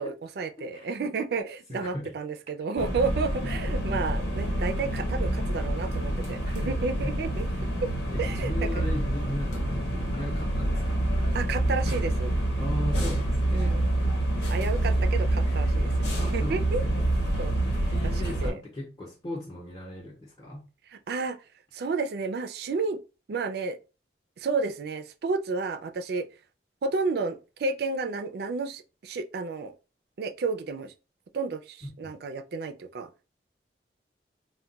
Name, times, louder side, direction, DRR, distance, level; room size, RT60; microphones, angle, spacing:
voice 1, 0.0-7.4 8.2-8.6 11.3-12.3 13.5-13.9 14.5-15.9 16.2-16.8 17.4-17.5 17.9-18.1 18.4-18.6 21.1-21.4 21.7-23.0 23.3-23.8 24.4-26.3 26.8-29.7 30.2-30.9 31.3-33.3, right 4 dB, 60° right, 0.3 m, -31 dB
voice 2, 0.7-1.1 1.7-2.2 3.5-3.6 6.4-6.7 7.0-7.2 8.1-11.1 12.6-13.8 15.2-15.7 16.2-17.1 17.9-20.7 31.8-32.2, left 1 dB, 20° left, 0.6 m, -38 dB
sound 1, 2.8-18.5, right 1 dB, 75° left, 0.9 m, -27 dB
2.2 x 2.2 x 3.8 m
head